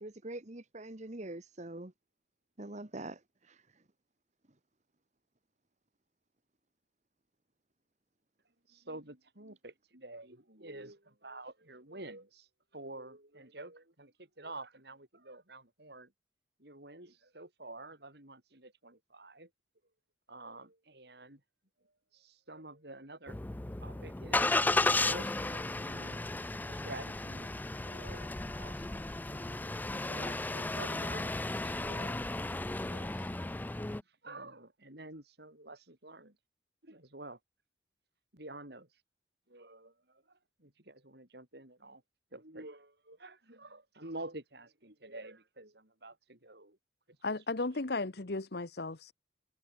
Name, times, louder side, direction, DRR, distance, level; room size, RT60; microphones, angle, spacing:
voice 1, 0.0-1.9 2.6-3.2 3.5-3.6, right 2 dB, 40° right, 1.5 m, -43 dB
voice 2, 8.7-16.1 16.6-19.5 20.3-21.4 22.1-23.4 23.8-27.6 27.9-33.5 33.7-36.4 36.8-37.4 38.3-38.9 39.5-42.0 42.3-46.8, right 2 dB, 60° right, 4.9 m, -49 dB
Engine starting, 23.3-34.0, left 2 dB, 10° left, 0.4 m, -34 dB
voice 3, 47.2-49.1, left 3 dB, 60° left, 1.1 m, -35 dB
head